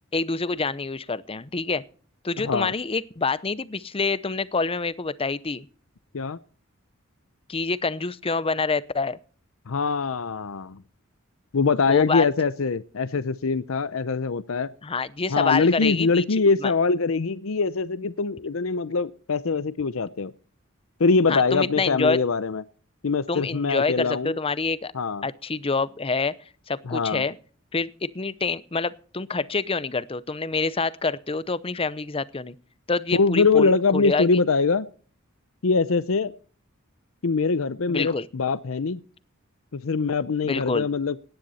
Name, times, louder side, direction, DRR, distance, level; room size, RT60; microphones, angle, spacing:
voice 1, 0.1-1.8 2.2-5.7 7.5-9.2 11.9-12.3 14.8-16.2 16.6-16.7 21.3-22.2 23.3-24.9 25.2-26.3 26.7-27.4 27.7-32.5 32.9-34.4 37.9-38.3 40.4-40.9, left 4 dB, 25° left, 0.7 m, -26 dB
voice 2, 2.4-2.7 6.1-6.4 9.7-10.8 11.5-14.7 15.3-20.3 21.0-22.6 23.0-24.3 24.9-25.3 26.9-27.2 33.1-34.9 35.6-36.3 37.2-39.0 39.7-41.2, left 4 dB, 75° left, 0.6 m, -23 dB
17.5 x 10.5 x 4.2 m
head